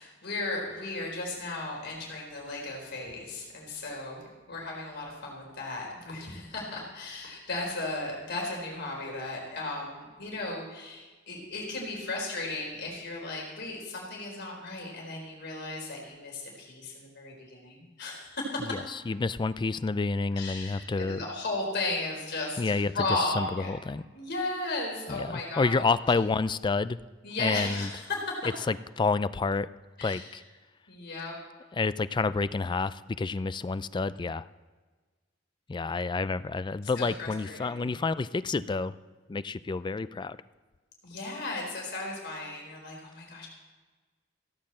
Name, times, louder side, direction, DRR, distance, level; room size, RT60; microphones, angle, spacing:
voice 1, 0.0-18.7 20.3-23.7 24.1-25.9 27.2-28.4 30.0-30.2 30.9-31.3 37.0-37.9 41.0-43.5, left 2 dB, 60° left, -2 dB, 4.3 m, -35 dB
voice 2, 18.7-21.3 22.6-24.1 25.1-27.0 27.4-27.9 28.4-29.7 30.0-30.4 31.7-34.5 35.7-38.9 39.3-40.4, left 4 dB, 25° left, 15 dB, 0.3 m, -29 dB
16.0 x 7.5 x 7.6 m, 1.3 s
head